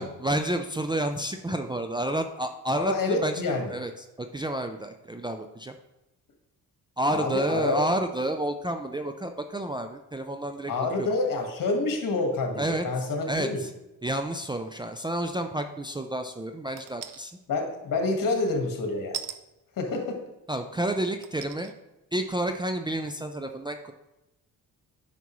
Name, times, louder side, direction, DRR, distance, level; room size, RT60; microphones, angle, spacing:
voice 1, 0.0-3.9 4.2-5.7 7.0-10.7 11.0-11.1 12.6-12.9 13.3-13.7 14.0-17.3 20.5-21.7 22.1-23.9, right 1 dB, 15° right, 5 dB, 0.4 m, -30 dB
voice 2, 2.8-3.7 7.1-7.8 10.7-13.6 17.5-19.2 19.8-20.2, left 3 dB, 60° left, 3 dB, 1.7 m, -28 dB
sound 1, 16.8-17.2 19.1-19.4 20.3-20.4 21.2-21.7 22.2-22.3, right 9 dB, 60° right, 0.6 m, -37 dB
9.2 x 5.8 x 3.1 m, 0.96 s
cardioid pair, 90°, 36 cm